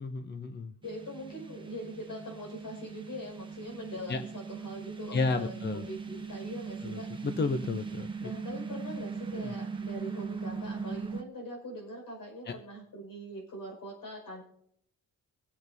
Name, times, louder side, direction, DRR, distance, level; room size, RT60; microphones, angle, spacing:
voice 1, 0.0-0.7 4.1-4.2 5.1-5.8 6.8-8.3 9.4-9.5 12.5-12.6, left 3 dB, 30° left, 8 dB, 0.7 m, -32 dB
voice 2, 0.8-7.1 8.2-14.4, equal, 80° left, 0 dB, 5.6 m, -42 dB
sound 1, 0.8-11.2, right 5 dB, 15° right, 0.9 m, -40 dB
25.0 x 8.5 x 2.7 m, 0.69 s
wide cardioid pair, 150°, 33 cm